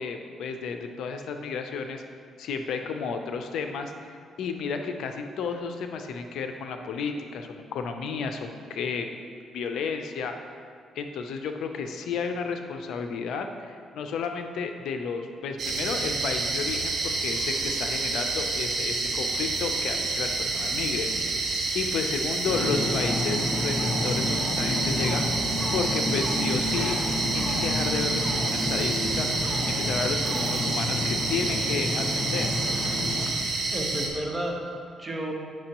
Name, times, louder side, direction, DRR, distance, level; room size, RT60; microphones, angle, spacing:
voice 1, 0.0-2.0 2.4-9.1 9.5-10.5 11.0-27.0 27.3-29.3 29.7-32.5, left 5 dB, 75° left, 6 dB, 0.5 m, -32 dB
sound 1, 15.6-34.1, right 3 dB, 55° right, 1.3 m, -28 dB
Ocean, 22.4-33.3, left 1 dB, 30° left, 0.9 m, -30 dB
voice 2, 33.7-35.3, right 1 dB, 20° right, -1 dB, 1.1 m, -32 dB
8.8 x 5.9 x 2.9 m, 2.1 s
cardioid pair, 90°, 0 cm